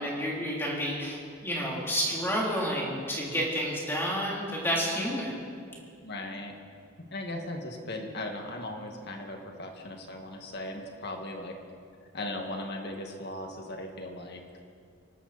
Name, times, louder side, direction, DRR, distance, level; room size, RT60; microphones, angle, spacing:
voice 1, 0.0-5.4, equal, 10° left, -4 dB, 3.2 m, -30 dB
voice 2, 6.0-6.6 7.1-11.5 12.1-14.4, left 1 dB, 55° left, 3 dB, 1.9 m, -38 dB
25.0 x 12.5 x 4.2 m, 2.3 s
head